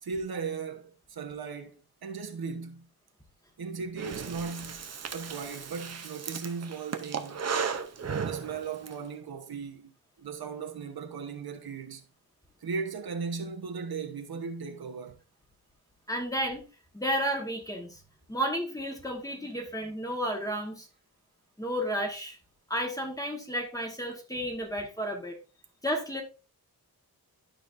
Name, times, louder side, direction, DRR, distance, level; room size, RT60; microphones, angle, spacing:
voice 1, 0.0-2.9 3.6-4.8 5.1-7.4 8.2-9.9 10.2-12.0 12.6-15.2, right 5 dB, 70° right, 1.1 m, -37 dB
Breathing, 4.0-8.9, right 6 dB, 40° right, 0.7 m, -35 dB
voice 2, 16.1-16.6 16.9-18.0 18.3-20.9 21.6-22.4 22.7-25.4 25.8-26.2, equal, 10° left, 1.3 m, -32 dB
11.5 x 5.1 x 2.6 m
wide cardioid pair, 180°, 38 cm